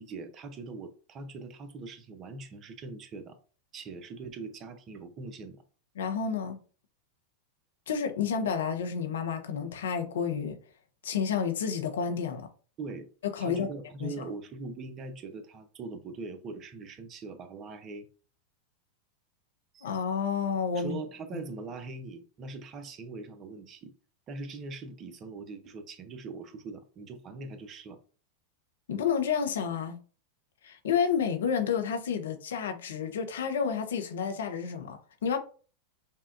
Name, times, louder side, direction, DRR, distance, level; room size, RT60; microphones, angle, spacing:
voice 1, 0.0-3.4 3.7-5.6 12.8-13.1 13.4-18.1 19.7-19.9 20.7-23.9 24.3-28.0, right 3 dB, 35° right, 0.7 m, -41 dB
voice 2, 6.0-6.6 7.9-10.6 11.0-12.5 13.3-13.7 14.0-14.3 19.8-21.0 28.9-30.0 30.6-35.4, left 6 dB, 75° left, 0.7 m, -30 dB
5.4 x 2.3 x 2.5 m
hypercardioid pair, 95°, 0 cm